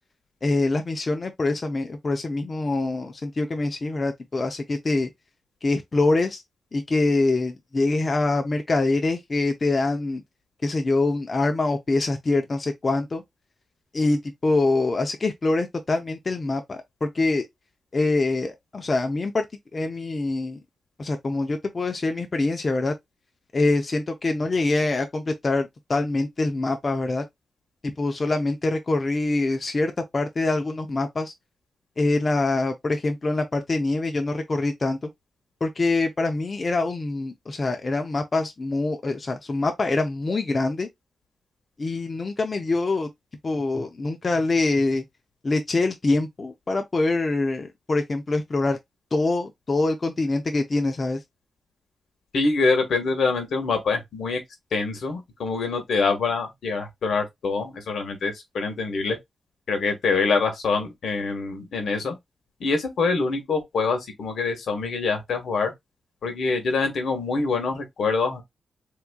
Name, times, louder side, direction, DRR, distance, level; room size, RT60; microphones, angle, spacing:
voice 1, 0.4-5.1 5.6-6.4 6.7-10.2 10.6-13.2 13.9-17.5 17.9-19.4 19.7-20.6 21.0-22.9 23.5-27.2 27.8-31.3 32.0-35.1 35.6-40.9 41.8-43.1 43.4-45.0 45.4-48.8 49.1-51.2, left 2 dB, 35° left, 0.5 m, -24 dB
voice 2, 52.3-54.4 54.7-59.2 59.7-62.1 62.6-65.7 66.2-68.4, left 4 dB, 80° left, 1.2 m, -25 dB
3.5 x 2.9 x 2.2 m
wide cardioid pair, 115°, 0 cm